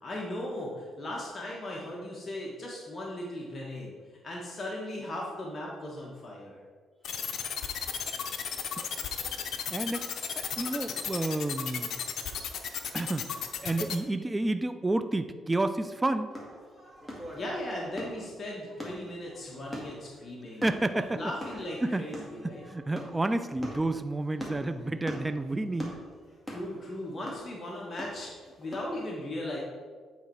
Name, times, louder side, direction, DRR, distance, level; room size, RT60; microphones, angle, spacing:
voice 1, 0.0-3.9 4.2-6.6 17.3-20.6 20.9-22.6 26.5-29.6, left 1 dB, 35° left, -3 dB, 1.4 m, -37 dB
sound 1, 7.0-14.0, left 8 dB, 70° left, 0.7 m, -34 dB
voice 2, 8.5-8.9 9.7-10.1 10.4-11.9 12.9-13.3 13.6-16.3 20.6-21.2 21.8-26.0, right 2 dB, 15° right, 10 dB, 0.4 m, -30 dB
sound 2, 16.3-29.0, equal, 5° left, 2.2 m, -43 dB
8.9 x 4.0 x 4.7 m, 1.6 s
cardioid pair, 90°, 0 cm